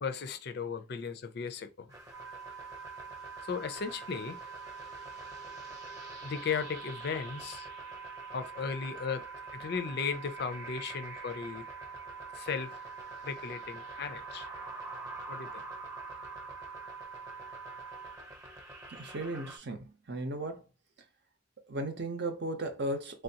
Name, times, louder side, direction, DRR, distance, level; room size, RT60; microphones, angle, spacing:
voice 1, 0.0-1.9 3.4-4.4 6.2-7.7 8.3-9.3 9.5-11.7 12.4-12.7 13.2-14.5 15.3-15.6, left 5 dB, 55° left, 0.4 m, -36 dB
sound 1, 1.9-19.6, right 1 dB, 20° right, 0.8 m, -48 dB
sound 2, 2.1-18.2, right 6 dB, ahead, 0.4 m, -46 dB
voice 2, 18.9-20.7 21.7-23.2, right 1 dB, 60° right, 0.7 m, -36 dB
3.3 x 2.4 x 2.8 m
head